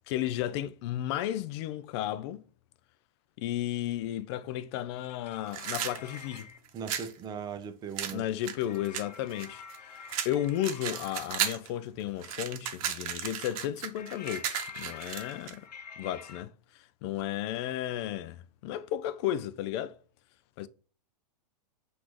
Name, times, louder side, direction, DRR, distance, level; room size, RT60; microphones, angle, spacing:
voice 1, 0.1-2.4 3.4-6.5 8.1-15.7 16.0-16.5 17.0-19.9 20.6-20.7, left 12 dB, 40° left, 0.4 m, -33 dB
sound 1, 5.0-6.6 8.5-11.3 14.0-16.4, left 6 dB, 80° left, 0.7 m, -47 dB
sound 2, 5.5-7.1 8.0-9.8 10.1-11.7 12.0-15.6, right 9 dB, 55° right, 0.8 m, -35 dB
voice 2, 6.7-8.3, right 7 dB, 20° right, 0.5 m, -39 dB
5.9 x 2.6 x 3.1 m
hypercardioid pair, 125°, 21 cm